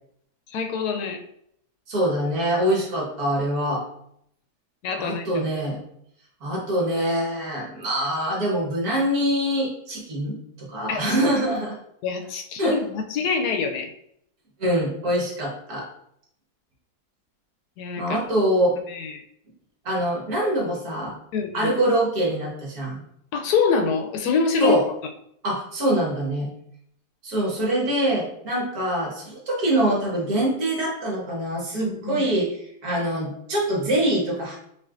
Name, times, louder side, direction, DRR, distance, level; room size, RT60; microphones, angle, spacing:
voice 1, 0.5-1.2 4.8-5.4 10.9-11.3 12.0-13.9 17.8-18.2 18.9-19.2 21.3-21.7 23.3-24.8 31.8-32.3, left 5 dB, 75° left, 4 dB, 1.1 m, -25 dB
voice 2, 1.9-3.8 5.0-5.8 6.4-11.8 12.6-12.8 14.6-15.9 18.0-18.8 19.9-21.1 21.5-23.0 24.6-24.8 25.4-26.5 27.2-32.6 32.8-34.6, right 1 dB, 65° right, -3 dB, 1.8 m, -24 dB
5.6 x 2.8 x 2.5 m, 0.72 s
omnidirectional pair, 1.7 m